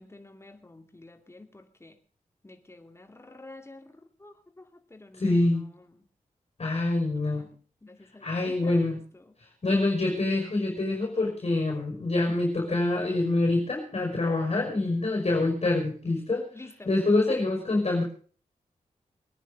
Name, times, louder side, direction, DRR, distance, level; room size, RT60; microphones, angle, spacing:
voice 1, 0.0-1.9 2.4-3.8 4.2-4.3 4.9-5.2 7.8-8.8 11.7-11.8 16.5-16.7, left 2 dB, 20° left, 6 dB, 2.4 m, -48 dB
voice 2, 5.1-5.7 6.6-7.5 8.2-9.0 9.6-18.0, left 2 dB, 45° left, 1 dB, 5.5 m, -26 dB
22.5 x 10.0 x 5.3 m, 0.41 s
wide cardioid pair, 90°, 14 cm